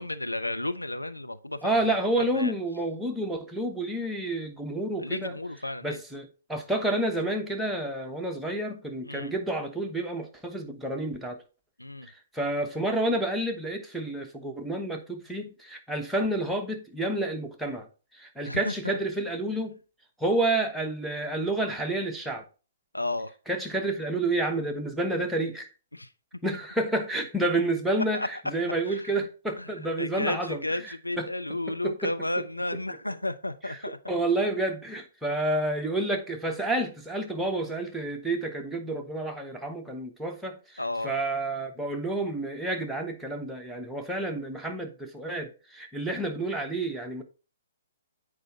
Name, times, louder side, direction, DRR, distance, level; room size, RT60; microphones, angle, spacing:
voice 1, 0.0-1.7 2.3-2.5 5.0-6.0 9.1-9.3 11.8-12.1 18.4-19.0 22.9-23.3 25.9-26.1 28.1-28.3 28.9-29.1 29.6-34.0 40.8-41.2, left 1 dB, 85° left, 0.6 m, -33 dB
voice 2, 1.6-5.4 5.8-11.4 12.3-17.9 18.1-19.8 20.2-22.4 23.5-25.7 26.4-31.3 31.7-32.1 33.6-47.2, right 2 dB, 5° right, 1.0 m, -29 dB
8.1 x 4.8 x 4.1 m
figure-of-eight pair, 120°, 0 cm